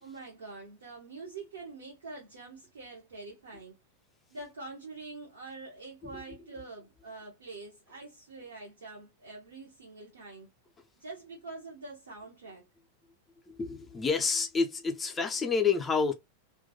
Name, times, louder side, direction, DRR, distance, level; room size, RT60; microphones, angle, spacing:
voice 1, 0.0-3.8 4.3-10.5 11.0-12.6, right 3 dB, 70° right, 0.7 m, -45 dB
voice 2, 13.5-16.1, left 5 dB, 15° left, 0.4 m, -28 dB
2.2 x 2.2 x 2.6 m
figure-of-eight pair, 90°, 0 cm